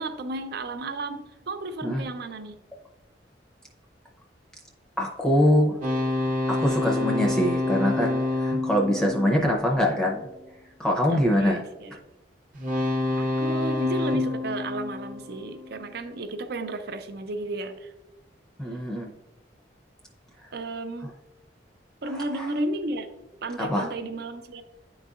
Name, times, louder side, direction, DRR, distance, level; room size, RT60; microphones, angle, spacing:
voice 1, 0.0-2.6 11.1-12.0 13.2-17.9 20.5-21.1 22.0-23.1 23.4-24.6, right 2 dB, 60° right, 9 dB, 0.5 m, -33 dB
voice 2, 5.0-5.8 6.5-10.3 10.8-11.6 18.6-19.1 21.0-21.1 22.1-22.5 23.6-23.9, equal, 5° left, 0 dB, 0.6 m, -24 dB
sound 1, 5.8-10.2 12.5-15.8, left 2 dB, 45° right, 0.9 m, -28 dB
9.8 x 3.9 x 2.4 m, 1.0 s
head